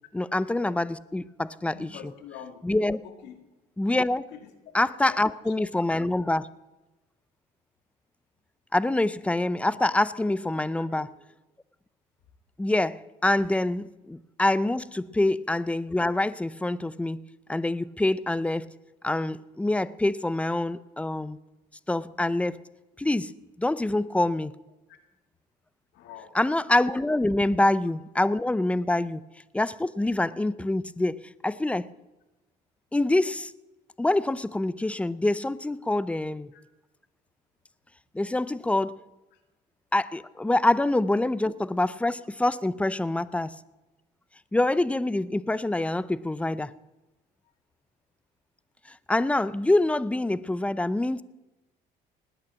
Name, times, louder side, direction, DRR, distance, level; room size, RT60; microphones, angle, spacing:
voice 1, 0.1-1.9 2.6-3.0 3.8-4.3 4.7-6.5 8.7-11.1 12.6-17.2 17.5-18.7 19.0-21.4 21.9-22.6 23.0-23.3 23.6-24.5 26.3-29.2 29.5-31.9 32.9-33.5 34.0-36.5 38.1-39.0 39.9-43.6 44.5-46.7 49.1-51.2, left 2 dB, 5° left, 18 dB, 0.5 m, -25 dB
voice 2, 1.7-2.6 3.0-3.4 4.3-4.5 5.0-5.5 10.5-11.1 24.9-25.0 25.9-26.3 36.5-36.6 39.3-39.4, left 8 dB, 85° left, 7 dB, 1.9 m, -46 dB
19.0 x 9.0 x 7.5 m, 1.1 s
cardioid pair, 100°, 18 cm